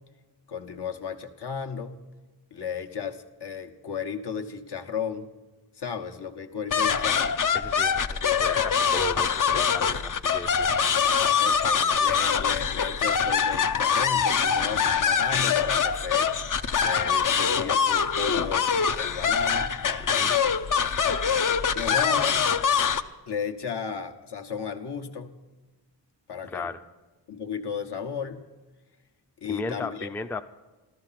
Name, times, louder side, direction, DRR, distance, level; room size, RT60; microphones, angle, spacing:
voice 1, 0.5-2.0 2.5-5.3 5.7-7.4 11.4-16.3 16.7-19.7 21.7-22.4 23.3-25.4 26.3-26.7 27.3-28.4 29.4-30.1, left 6 dB, 65° left, 5 dB, 1.3 m, -34 dB
sound 1, 6.7-23.0, left 6 dB, 45° left, 0.7 m, -24 dB
voice 2, 7.5-10.7 20.0-20.4 26.5-26.8 29.5-30.4, left 2 dB, 5° left, 8 dB, 0.4 m, -36 dB
14.0 x 13.5 x 5.8 m, 1.2 s
wide cardioid pair, 130°, 43 cm